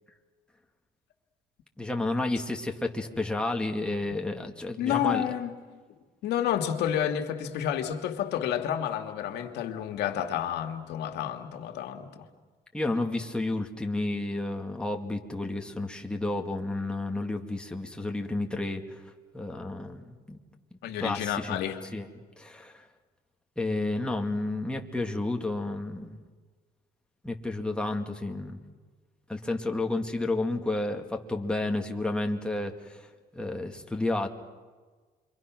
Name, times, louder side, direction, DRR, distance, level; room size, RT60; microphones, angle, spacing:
voice 1, 1.8-5.2 12.7-19.0 19.3-20.4 21.0-21.6 21.9-22.1 22.4-22.9 23.6-26.2 27.2-28.6 29.3-33.0 33.3-34.3, left 2 dB, 5° left, 2 dB, 2.3 m, -31 dB
voice 2, 4.8-5.5 6.2-12.3 20.8-21.8, left 10 dB, 80° left, 5 dB, 2.0 m, -30 dB
29.5 x 24.0 x 6.2 m, 1.4 s
cardioid pair, 110°, 17 cm